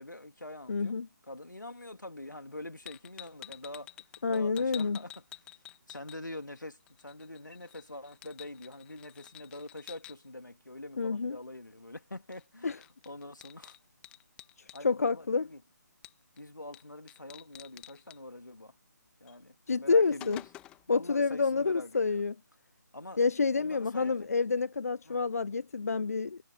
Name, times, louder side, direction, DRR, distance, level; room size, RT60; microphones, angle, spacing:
voice 1, 0.0-1.0 1.3-3.9 4.3-5.2 5.9-13.8 14.7-15.6 16.4-18.7 19.2-20.4 20.9-22.2 22.9-23.2 23.5-24.3 25.1-25.2, left 1 dB, 75° left, 2.6 m, -45 dB
voice 2, 0.7-1.1 4.2-5.0 11.0-11.4 12.6-12.8 14.8-15.5 19.7-20.4 20.9-22.3 23.2-26.4, left 4 dB, 55° left, 0.5 m, -28 dB
sound 1, 2.9-6.6 6.9-10.1 12.3-12.4 12.7-14.8 16.0-16.4 16.7-16.8 17.1-18.2 19.3-19.4 19.8-20.9, left 14 dB, 10° left, 1.9 m, -49 dB
figure-of-eight pair, 150°, 10 cm